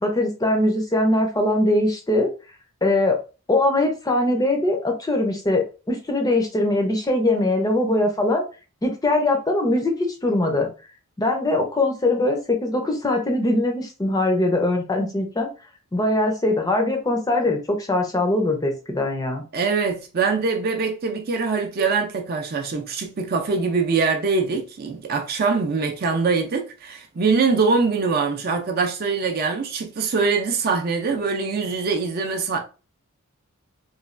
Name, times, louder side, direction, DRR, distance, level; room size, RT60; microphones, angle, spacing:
voice 1, 0.0-2.3 2.8-3.2 3.5-8.4 8.8-10.7 11.2-15.5 15.9-19.4, left 1 dB, 15° left, 0.5 m, -21 dB
voice 2, 19.5-32.6, right 4 dB, 45° right, 0.4 m, -23 dB
3.1 x 2.3 x 2.4 m
head